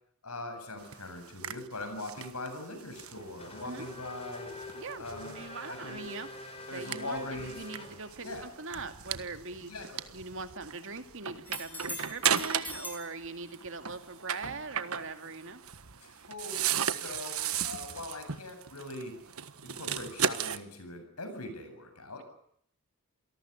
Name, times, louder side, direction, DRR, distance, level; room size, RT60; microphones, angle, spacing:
voice 1, 0.2-4.5 5.0-5.4 5.7-6.0 6.7-7.5 8.2-8.5 9.7-10.1 16.0-19.2 19.6-22.2, left 2 dB, 85° left, 8 dB, 7.8 m, -41 dB
sound 1, 0.8-12.9 13.2-20.6, right 8 dB, 75° right, 1.5 m, -36 dB
Race car auto racing / Accelerating revving vroom, 2.9-8.4, left 2 dB, 25° left, 5.0 m, -46 dB
voice 2, 5.3-9.7 10.1-15.6, right 3 dB, 60° right, 7 dB, 2.6 m, -41 dB
sound 2, 11.5-13.1 16.8-16.9, left 2 dB, 10° left, 6.0 m, -41 dB
28.0 x 18.5 x 9.7 m, 0.67 s
head